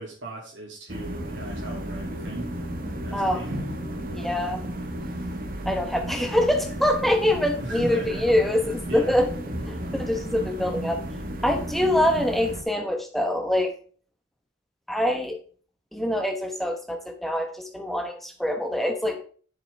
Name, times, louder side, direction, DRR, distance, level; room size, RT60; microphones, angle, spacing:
voice 1, 0.0-2.5 3.0-3.6 7.6-8.2 8.9-9.2, right 1 dB, 70° right, -4 dB, 2.3 m, -37 dB
sound 1, 0.9-12.6, equal, 45° right, 1.1 m, -33 dB
voice 2, 3.1-3.4 4.1-4.6 5.7-9.3 9.7-11.0 11.4-13.7 14.9-15.4 15.9-19.2, left 1 dB, ahead, 4 dB, 0.9 m, -24 dB
10.5 x 6.0 x 3.3 m, 0.43 s
head